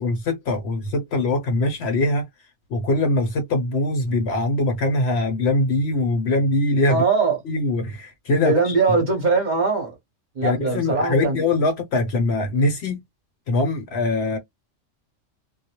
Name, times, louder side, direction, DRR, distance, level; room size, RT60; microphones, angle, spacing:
voice 1, 0.0-2.2 2.7-7.0 7.5-8.7 10.4-13.0 13.5-14.4, left 2 dB, 60° left, 0.8 m, -22 dB
voice 2, 6.9-7.4 8.3-10.0 10.4-11.4, right 4 dB, 40° right, 0.8 m, -21 dB
2.2 x 2.0 x 2.8 m
omnidirectional pair, 1.4 m